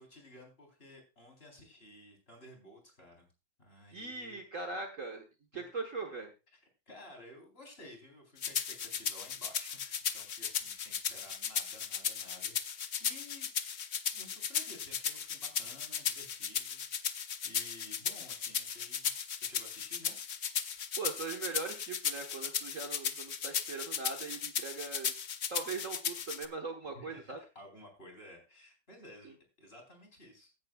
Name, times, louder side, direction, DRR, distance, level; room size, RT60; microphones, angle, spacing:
voice 1, 0.0-3.3 3.6-4.5 5.5-5.7 6.5-6.6 6.9-13.5 14.1-19.1 19.4-20.2 26.9-29.3 29.6-30.5, left 1 dB, 30° left, 2 dB, 4.1 m, -54 dB
voice 2, 3.9-5.2 5.5-6.3 21.0-25.1 25.5-27.4, right 4 dB, 45° right, 3 dB, 1.6 m, -40 dB
sound 1, 8.4-26.5, left 7 dB, 55° left, 0.8 m, -36 dB
16.5 x 10.5 x 2.3 m, 0.27 s
omnidirectional pair, 2.1 m